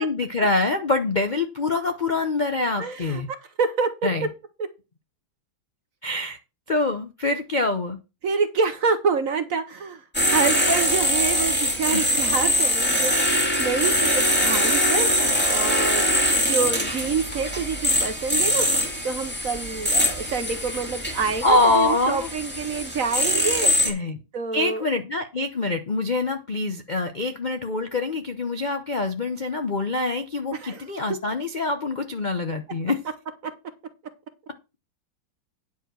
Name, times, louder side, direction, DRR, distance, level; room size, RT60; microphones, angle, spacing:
voice 1, 0.0-3.3 4.0-4.3 6.0-6.4 6.7-8.0 11.9-12.0 21.4-22.3 23.8-24.2 24.5-33.0, left 2 dB, 80° left, 0.4 m, -25 dB
voice 2, 2.8-3.2 3.6-4.1 8.2-10.0 10.3-16.2 16.5-18.7 19.0-24.0 24.3-24.9 30.5-30.8, right 5 dB, 55° right, 1.0 m, -27 dB
sound 1, 10.1-23.9, equal, 5° left, 2.4 m, -23 dB
9.9 x 4.9 x 6.1 m
omnidirectional pair, 2.2 m